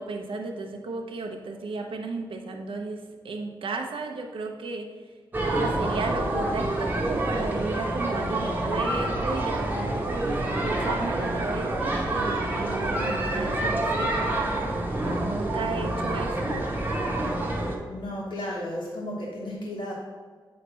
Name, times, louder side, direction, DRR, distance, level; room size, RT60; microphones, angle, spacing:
voice 1, 0.0-4.9 5.5-14.8 15.2-16.6, right 3 dB, 90° right, 3 dB, 0.9 m, -34 dB
sound 1, 5.3-17.8, right 1 dB, 20° right, 1.1 m, -27 dB
voice 2, 17.9-19.9, left 1 dB, 70° left, -6 dB, 1.4 m, -33 dB
8.6 x 3.3 x 5.6 m, 1.5 s
wide cardioid pair, 155°, 9 cm